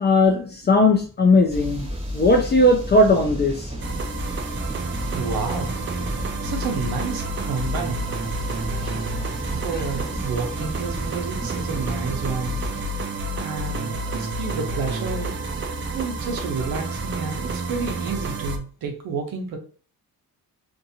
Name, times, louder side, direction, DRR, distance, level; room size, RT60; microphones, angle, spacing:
voice 1, 0.0-1.9 2.1-3.7, left 2 dB, 30° left, 1 dB, 0.5 m, -18 dB
sound 1, 1.5-12.8, equal, 15° right, 0.9 m, -33 dB
sound 2, 3.8-18.6, right 2 dB, 35° right, 0.4 m, -29 dB
voice 2, 5.1-5.7 6.4-8.1 9.4-12.6 13.3-15.4 15.9-19.6, right 4 dB, 80° right, 3 dB, 0.9 m, -30 dB
2.6 x 2.5 x 2.7 m, 0.39 s
cardioid pair, 110°, 35 cm